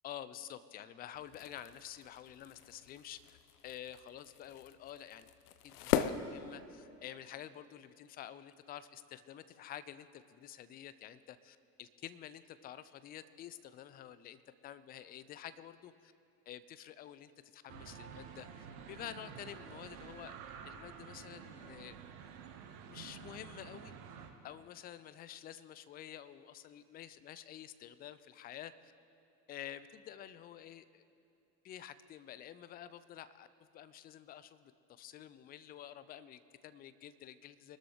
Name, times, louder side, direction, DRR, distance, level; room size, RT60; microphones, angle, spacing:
voice 1, 0.0-3.4 3.6-5.3 5.6-16.1 16.5-18.5 18.9-20.4 20.7-22.0 22.9-23.9 24.4-28.9 29.5-31.0 31.6-33.5 33.7-37.8, left 11 dB, 20° left, 15 dB, 0.4 m, -49 dB
sound 1, 1.1-7.1, left 10 dB, 65° left, 0.8 m, -40 dB
sound 2, 17.7-24.3, right 7 dB, 60° right, 1.5 m, -50 dB
24.5 x 13.0 x 3.3 m, 2.7 s
figure-of-eight pair, 65°, 50 cm